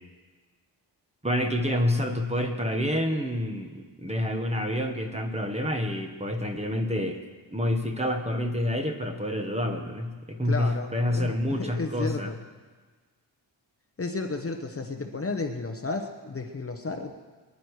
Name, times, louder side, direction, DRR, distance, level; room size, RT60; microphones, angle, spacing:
voice 1, 1.2-7.2 7.5-12.3, left 1 dB, 15° right, 3 dB, 1.3 m, -28 dB
voice 2, 10.5-12.4 14.0-17.1, left 3 dB, 30° left, 4 dB, 1.0 m, -33 dB
24.5 x 11.0 x 4.8 m, 1.4 s
wide cardioid pair, 165°, 46 cm